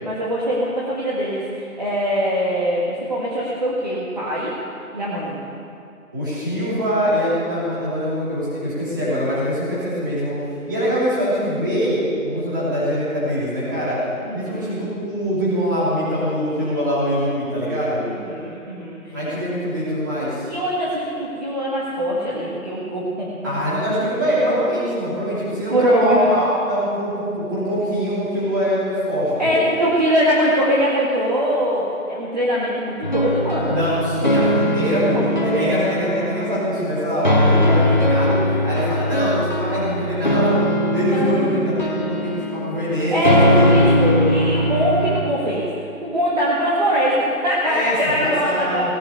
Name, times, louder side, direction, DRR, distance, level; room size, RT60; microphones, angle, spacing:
voice 1, 0.0-4.5 4.9-5.4 14.2-14.8 18.1-19.2 20.5-23.5 25.7-26.3 29.4-33.9 35.5-35.8 41.1-41.4 43.1-45.7 46.0-48.9, equal, 30° right, -7 dB, 1.9 m, -22 dB
voice 2, 6.1-10.3 10.7-14.1 14.3-18.0 19.1-20.5 23.4-29.6 33.7-38.4 38.6-40.6 40.9-43.8 47.6-49.0, equal, 15° right, -10 dB, 3.0 m, -23 dB
sound 1, 33.0-45.2, equal, 35° left, 1.0 m, -20 dB
17.5 x 8.7 x 8.2 m, 2.6 s
figure-of-eight pair, 175°, 43 cm